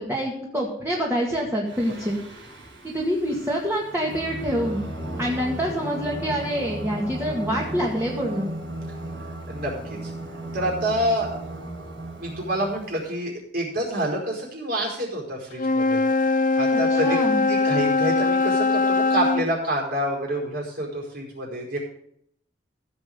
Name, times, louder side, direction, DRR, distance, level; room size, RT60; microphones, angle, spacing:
voice 1, 0.0-2.2 2.8-4.8 5.2-8.5 16.7-17.4, equal, 15° right, -3 dB, 2.0 m, -26 dB
Singing, 1.7-13.0, right 1 dB, 85° right, 4.2 m, -35 dB
voice 2, 9.5-10.1 10.5-11.3 12.1-16.0 16.6-17.2 17.5-21.8, right 1 dB, 55° right, -1 dB, 4.9 m, -27 dB
Wind instrument woodwind instrument, 15.5-19.5, left 3 dB, 45° left, 0.7 m, -21 dB
15.5 x 7.4 x 5.2 m, 0.71 s
head